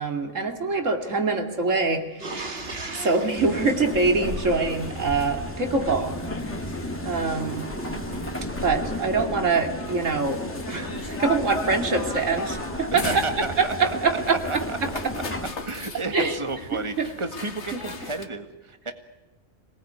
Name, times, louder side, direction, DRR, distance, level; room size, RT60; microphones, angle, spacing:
voice 1, 0.0-2.5 2.9-6.1 7.0-7.7 8.6-13.2 13.6-14.4 16.1-16.3 17.7-17.8, right 4 dB, 90° right, 5 dB, 3.0 m, -24 dB
sound 1, 2.2-4.9 7.3-8.7, right 3 dB, 50° right, 2.1 m, -38 dB
sound 2, 2.6-18.3, left 3 dB, 65° left, 2.1 m, -38 dB
sound 3, 3.4-15.5, left 1 dB, 10° left, 2.0 m, -34 dB
voice 2, 12.9-14.8 15.7-18.9, right 3 dB, 25° right, 7 dB, 1.9 m, -32 dB
26.5 x 19.5 x 9.5 m, 1.1 s
omnidirectional pair, 1.3 m